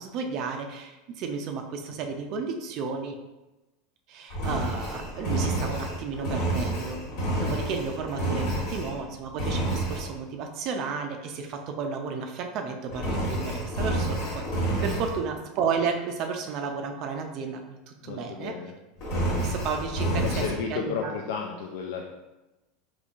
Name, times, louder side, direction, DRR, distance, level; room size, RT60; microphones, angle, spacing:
voice 1, 0.0-3.2 4.1-7.0 7.4-18.6 19.3-20.4 20.7-21.1, right 5 dB, 50° right, 4 dB, 0.4 m, -33 dB
Engine, 4.3-9.0 9.4-10.1 12.9-15.2 19.0-20.6, right 1 dB, 60° left, 1.4 m, -29 dB
voice 2, 18.0-18.7 20.0-22.1, left 6 dB, 75° left, 1 dB, 0.3 m, -33 dB
3.6 x 3.1 x 2.5 m, 1.0 s
supercardioid pair, 135°, 0 cm